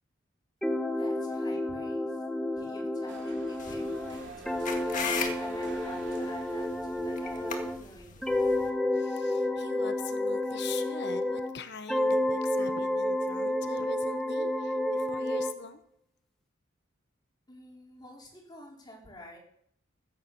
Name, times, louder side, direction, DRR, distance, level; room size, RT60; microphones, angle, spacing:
sound 1, 0.6-7.8 8.2-11.6 11.9-15.5, left 1 dB, ahead, 1.1 m, -30 dB
voice 1, 0.9-2.2 2.5-4.8 5.4-8.5 17.5-19.4, left 1 dB, 20° left, -2 dB, 4.3 m, -50 dB
sound 2, 3.1-6.9, right 3 dB, 60° right, 2.8 m, -48 dB
sound 3, 3.6-8.7, left 5 dB, 40° left, 1.8 m, -38 dB
voice 2, 8.9-15.8, left 5 dB, 55° left, 10 dB, 1.0 m, -44 dB
14.5 x 9.0 x 7.1 m, 0.67 s
head